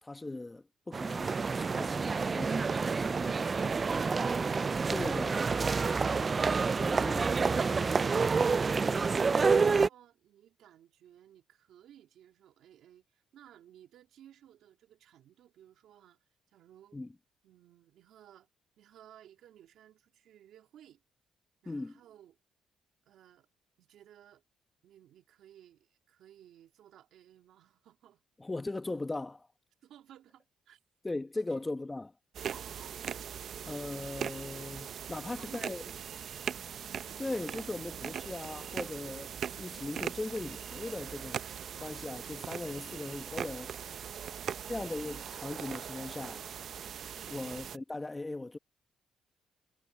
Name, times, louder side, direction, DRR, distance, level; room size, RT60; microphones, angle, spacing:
voice 1, 0.0-2.8 3.2-3.3 4.9-5.5 6.8-7.4 16.9-17.1 21.6-21.9 28.4-29.5 31.0-32.1 33.6-35.8 37.2-41.4 41.8-43.7 44.7-46.5 47.3-48.6, left 2 dB, 20° left, 1.6 m, -39 dB
sound 1, 0.9-9.9, right 4 dB, 35° right, 0.3 m, -28 dB
voice 2, 8.9-17.0 17.4-18.5 18.8-21.0 21.6-22.4 23.1-23.5 23.8-24.4 24.8-28.2 29.8-30.8 31.5-32.0 32.6-33.2 35.1-36.1 47.2-47.5, right 11 dB, 75° right, 3.0 m, -58 dB
sound 2, 32.3-47.8, right 8 dB, 60° right, 0.7 m, -40 dB
cardioid pair, 90°, 0 cm